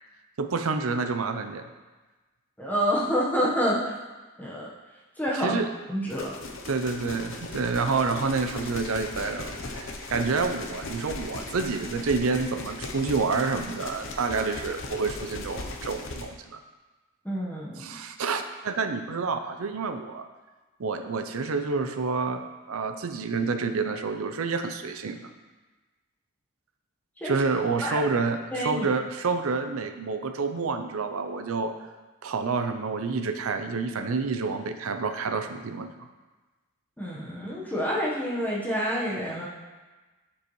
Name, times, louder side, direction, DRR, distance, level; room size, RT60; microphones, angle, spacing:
voice 1, 0.4-1.7 5.4-5.7 6.7-16.6 17.8-20.3 20.8-25.3 27.2-31.7 32.2-35.9, right 4 dB, 80° right, 8 dB, 0.5 m, -28 dB
voice 2, 2.6-3.9 4.4-4.7 5.2-5.6 5.9-6.3 17.2-17.9 27.2-27.3 27.8-28.0 28.5-28.9 37.0-39.5, equal, 10° left, -5 dB, 1.1 m, -28 dB
sound 1, 6.1-16.2, left 2 dB, 60° left, 0.7 m, -38 dB
7.5 x 6.9 x 3.1 m, 1.2 s
head